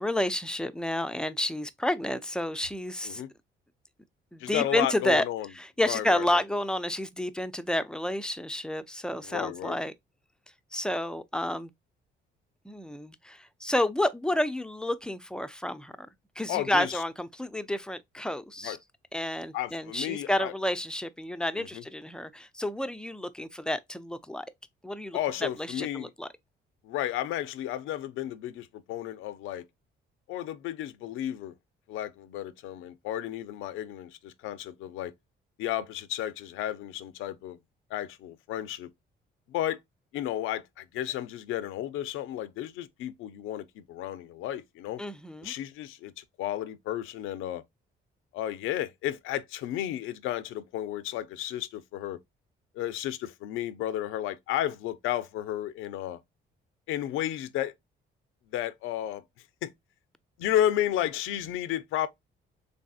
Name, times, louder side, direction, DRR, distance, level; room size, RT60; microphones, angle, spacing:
voice 1, 0.0-3.2 4.3-5.2 5.6-9.9 10.7-11.7 12.7-16.1 16.4-18.8 19.1-24.5 24.8-26.3 45.0-45.5, left 1 dB, 5° left, 0.3 m, -30 dB
voice 2, 4.4-5.5 5.9-6.4 9.2-9.8 16.5-17.0 18.6-18.8 19.5-20.5 21.5-21.8 25.1-26.1 26.8-29.7 30.3-31.5 31.9-35.1 35.6-37.6 37.9-38.9 39.5-39.8 40.1-45.0 45.4-47.6 48.3-52.2 52.7-56.2 56.9-57.7 58.5-59.2 59.6-59.7 60.4-62.1, left 12 dB, 90° left, 0.4 m, -32 dB
3.3 x 2.6 x 2.3 m
cardioid pair, 90°, 20 cm